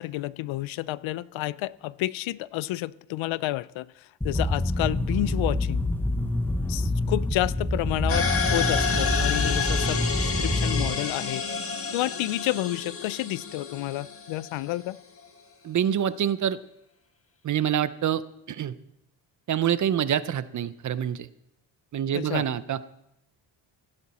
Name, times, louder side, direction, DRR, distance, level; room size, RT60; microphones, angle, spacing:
voice 1, 0.0-5.8 6.7-11.4 11.9-15.0 22.1-22.4, left 17 dB, 75° left, 19 dB, 0.6 m, -30 dB
sound 1, 4.2-10.9, left 1 dB, 5° left, 0.7 m, -26 dB
sound 2, 8.1-14.7, left 5 dB, 30° left, 1.6 m, -29 dB
voice 2, 15.6-16.6 17.4-18.7 19.5-21.3 21.9-22.8, right 9 dB, 40° right, 16 dB, 0.6 m, -26 dB
16.0 x 9.8 x 4.2 m, 0.82 s
cardioid pair, 110°, 47 cm